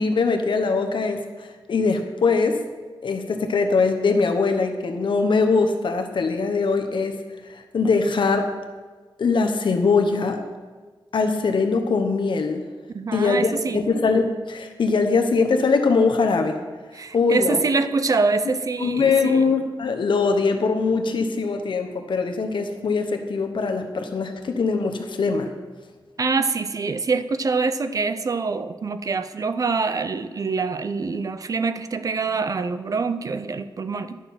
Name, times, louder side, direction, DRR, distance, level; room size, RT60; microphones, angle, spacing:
voice 1, 0.0-2.6 3.0-7.2 7.4-8.5 9.2-10.4 11.1-12.6 13.1-16.6 17.1-17.6 18.8-25.5, left 4 dB, 70° left, 5 dB, 1.0 m, -22 dB
voice 2, 12.9-13.8 16.9-19.4 26.2-34.2, right 4 dB, 45° right, 11 dB, 0.4 m, -25 dB
11.0 x 6.5 x 5.8 m, 1.4 s
wide cardioid pair, 175°, 9 cm